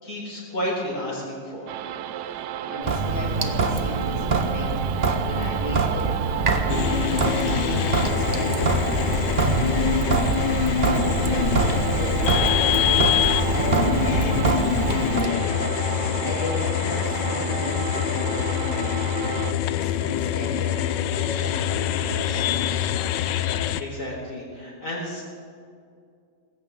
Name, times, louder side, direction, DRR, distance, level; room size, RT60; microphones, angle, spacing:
voice 1, 0.0-1.7 23.8-25.2, equal, 50° left, -4 dB, 4.9 m, -31 dB
sound 1, 1.7-19.5, right 10 dB, 75° right, 1.1 m, -32 dB
voice 2, 2.6-7.7 8.0-13.1 13.5-14.7 15.0-15.8 16.2-19.1 19.5-22.7, left 1 dB, 10° right, -3 dB, 1.9 m, -35 dB
Sink (filling or washing) / Drip, 2.8-15.3, right 4 dB, 35° right, 1.0 m, -25 dB
sound 2, 6.7-23.8, left 11 dB, 80° left, 1.3 m, -25 dB
19.5 x 16.5 x 3.9 m, 2.3 s
omnidirectional pair, 2.0 m